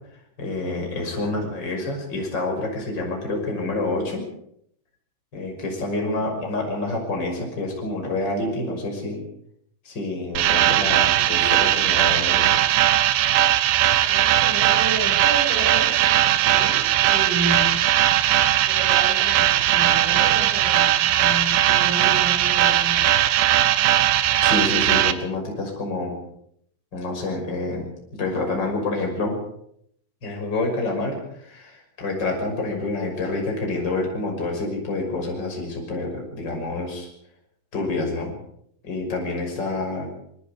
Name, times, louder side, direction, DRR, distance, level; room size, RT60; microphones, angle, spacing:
voice 1, 0.4-4.2 5.3-9.2 9.8-12.5 24.4-26.2 26.9-29.3 30.2-31.2 31.4-37.1 37.7-38.3 38.8-40.1, left 2 dB, 20° left, 1 dB, 6.1 m, -27 dB
voice 2, 6.0-6.3 14.0-17.8 18.7-23.1, right 2 dB, 35° right, -2 dB, 7.4 m, -32 dB
sound 1, 10.4-25.1, right 13 dB, 75° right, 2.6 m, -19 dB
25.5 x 21.5 x 5.2 m, 0.70 s
omnidirectional pair, 5.9 m